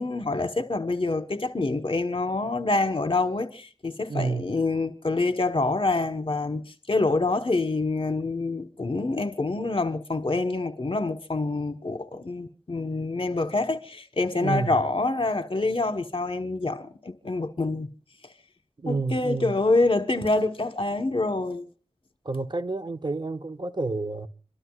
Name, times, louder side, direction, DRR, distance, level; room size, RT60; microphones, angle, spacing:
voice 1, 0.0-6.6 6.9-17.9 18.8-21.7, left 2 dB, 55° left, 1.2 m, -26 dB
voice 2, 4.1-4.5 14.4-14.8 18.8-19.5 22.2-24.3, right 3 dB, 45° right, 0.8 m, -29 dB
27.0 x 12.5 x 2.4 m
wide cardioid pair, 45°, 11 cm